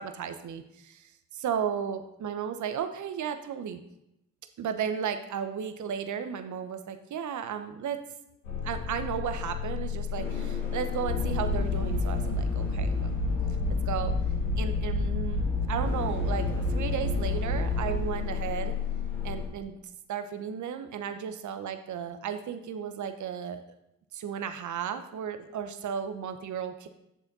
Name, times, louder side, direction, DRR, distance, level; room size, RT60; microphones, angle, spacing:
voice 1, 0.0-3.8 4.6-8.0 8.6-13.2 13.7-14.1 14.6-18.7 19.2-19.8 20.1-23.6 24.1-26.9, right 8 dB, 50° right, 9 dB, 0.9 m, -34 dB
sound 1, 8.4-19.5, left 7 dB, 85° left, 2.1 m, -34 dB
sound 2, 11.1-17.9, left 2 dB, 55° left, 3.0 m, -29 dB
8.3 x 6.8 x 4.1 m, 0.83 s
hypercardioid pair, 50°, 39 cm